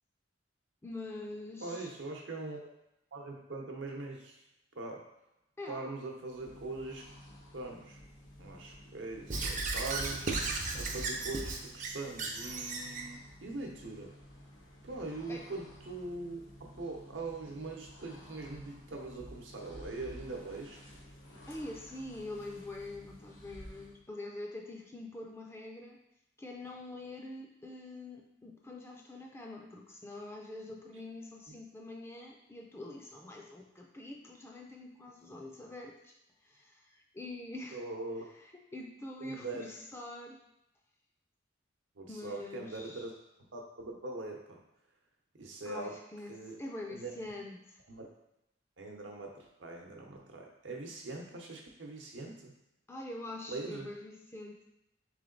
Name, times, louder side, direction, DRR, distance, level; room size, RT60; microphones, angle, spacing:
voice 1, 0.8-1.9 5.6-5.8 15.3-15.5 21.5-26.0 26.4-36.1 36.4-37.8 38.4-40.4 42.1-43.0 45.7-47.8 52.9-54.6, left 2 dB, 15° left, 0 dB, 0.5 m, -45 dB
voice 2, 1.6-2.7 3.1-4.4 4.8-5.1 5.7-7.1 7.5-8.0 8.4-14.1 14.8-20.8 31.5-31.6 37.7-38.3 39.2-39.7 41.9-43.1 43.5-44.6 45.4-46.0 46.3-46.6 46.9-47.1 47.9-48.1 48.8-52.5 53.5-53.9, right 2 dB, 75° right, 1 dB, 0.8 m, -42 dB
sound 1, 6.3-24.0, equal, 80° left, 1.0 m, -53 dB
Squeak / Writing, 9.3-13.1, right 3 dB, 45° right, 0.5 m, -35 dB
3.6 x 3.3 x 3.9 m, 0.86 s
head